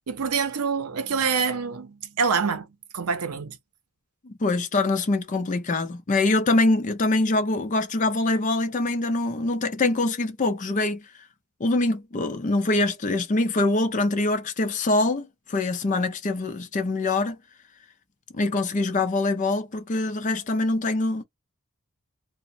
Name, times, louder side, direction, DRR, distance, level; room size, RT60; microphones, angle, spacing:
voice 1, 0.1-2.7 2.9-3.6, right 5 dB, 85° right, 0.6 m, -26 dB
voice 2, 4.2-11.0 11.6-17.4 18.3-21.2, left 2 dB, 35° left, 0.4 m, -24 dB
2.8 x 2.1 x 2.6 m
head